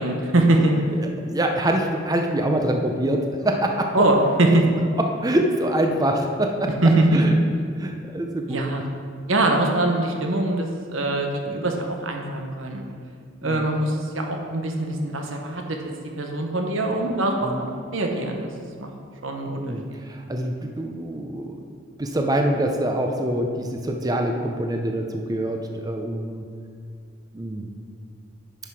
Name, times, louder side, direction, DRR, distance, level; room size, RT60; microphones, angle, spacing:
voice 1, 0.0-0.7 3.9-4.6 6.8-7.2 8.5-8.8 9.3-12.8 13.4-15.8 16.2-18.5 18.8-18.9 19.2-19.8, right 2 dB, 90° right, 2 dB, 1.1 m, -22 dB
voice 2, 1.0-4.0 4.5-4.6 5.2-6.7 7.1-7.4 7.8-8.6 13.4-13.6 17.4-17.6 19.6-21.6 22.0-26.4 27.3-27.7, right 1 dB, 20° right, 3 dB, 0.6 m, -25 dB
10.0 x 5.8 x 4.8 m, 2.2 s
head